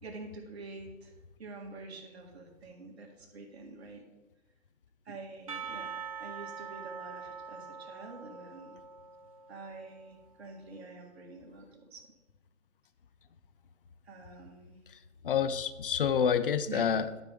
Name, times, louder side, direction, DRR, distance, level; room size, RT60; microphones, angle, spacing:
voice 1, 0.0-1.1 1.4-4.0 5.1-5.9 6.2-8.8 9.5-12.1 14.1-14.8 16.7-16.9, right 3 dB, 55° right, 2 dB, 2.0 m, -47 dB
Percussion / Church bell, 5.5-10.0, right 6 dB, 30° right, 0.4 m, -43 dB
voice 2, 15.2-17.2, left 7 dB, 45° left, 13 dB, 0.6 m, -28 dB
12.0 x 5.3 x 3.7 m, 1.1 s
figure-of-eight pair, 145°, 39 cm